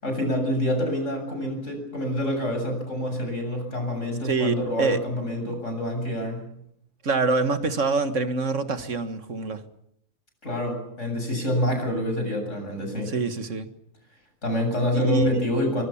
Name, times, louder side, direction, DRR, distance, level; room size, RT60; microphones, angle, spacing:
voice 1, 0.0-6.4 10.4-13.1 14.4-15.8, equal, 85° left, 8.1 m, -27 dB
voice 2, 4.2-5.0 7.0-9.6 13.1-13.7 14.9-15.5, right 3 dB, 80° right, 2.0 m, -25 dB
24.0 x 24.0 x 7.2 m
omnidirectional pair, 1.3 m